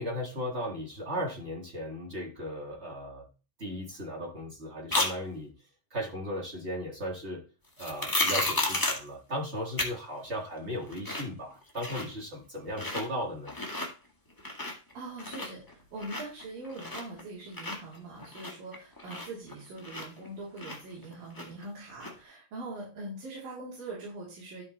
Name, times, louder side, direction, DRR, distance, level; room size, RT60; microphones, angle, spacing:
voice 1, 0.0-3.3 3.6-5.5 5.9-7.4 7.8-13.5, equal, 30° right, 0 dB, 1.4 m, -36 dB
sound 1, 4.9-5.1 7.8-9.1 9.8-9.9 10.3-10.4 10.7-11.3 11.6-12.2 12.7-13.0 13.4-13.9 14.3-14.9 15.2-17.2 17.5-20.3 20.6-21.6 22.0-22.1, left 2 dB, 20° left, 0.5 m, -32 dB
voice 2, 14.9-24.6, right 2 dB, 85° right, -7 dB, 5.3 m, -42 dB
12.5 x 5.3 x 4.2 m, 0.34 s
omnidirectional pair, 3.9 m